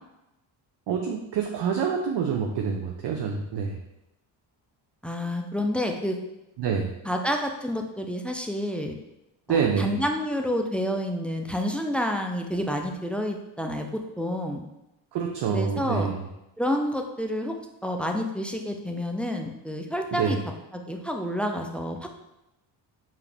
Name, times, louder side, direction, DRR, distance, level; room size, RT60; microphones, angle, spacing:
voice 1, 0.9-3.8 6.6-6.9 9.5-10.0 15.1-16.2 20.1-20.4, right 6 dB, 60° right, 2 dB, 0.6 m, -27 dB
voice 2, 5.0-6.2 7.0-9.0 9.5-14.6 15.5-16.1 16.6-17.6 17.8-20.4 20.7-22.0, equal, 5° left, 3 dB, 0.4 m, -29 dB
4.8 x 2.8 x 3.4 m, 0.92 s
cardioid pair, 75°, 47 cm